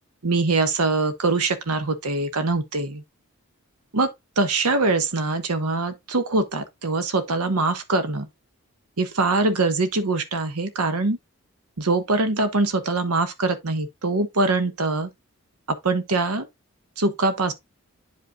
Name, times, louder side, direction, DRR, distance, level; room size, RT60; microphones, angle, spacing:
voice 1, 0.2-3.0 3.9-4.1 4.4-8.3 9.0-11.2 11.8-15.1 15.8-16.5 17.0-17.5, right 3 dB, 85° right, 1.1 m, -23 dB
9.8 x 5.3 x 2.3 m
head